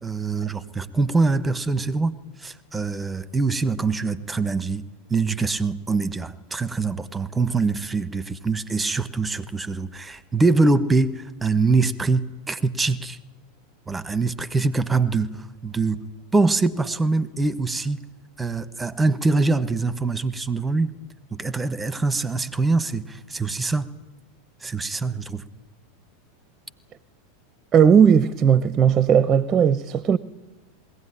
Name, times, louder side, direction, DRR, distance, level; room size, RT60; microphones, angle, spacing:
voice 1, 0.0-4.8 5.1-13.2 13.9-16.0 16.3-18.0 18.4-20.9 21.3-23.9 24.6-25.4, right 3 dB, 15° right, 1.2 m, -24 dB
voice 2, 27.7-30.2, right 7 dB, 30° right, 0.8 m, -17 dB
21.0 x 16.5 x 9.9 m
hypercardioid pair, 90°, 0 cm